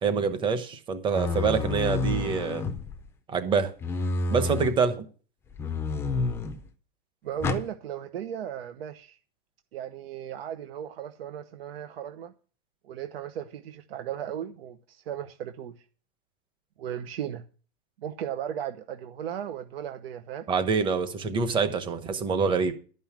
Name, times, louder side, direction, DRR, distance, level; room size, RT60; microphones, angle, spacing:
voice 1, 0.0-2.6 3.3-3.7 4.3-5.0 20.5-22.7, right 5 dB, 15° right, 1.0 m, -26 dB
sound 1, 1.1-3.1 3.8-4.8 5.6-6.6 7.4-7.7, left 3 dB, 10° left, 0.5 m, -29 dB
voice 2, 7.2-9.2 9.7-12.3 12.8-15.7 16.8-17.4 18.0-20.5, right 10 dB, 85° right, 1.0 m, -36 dB
12.0 x 5.5 x 7.3 m
supercardioid pair, 160°, 29 cm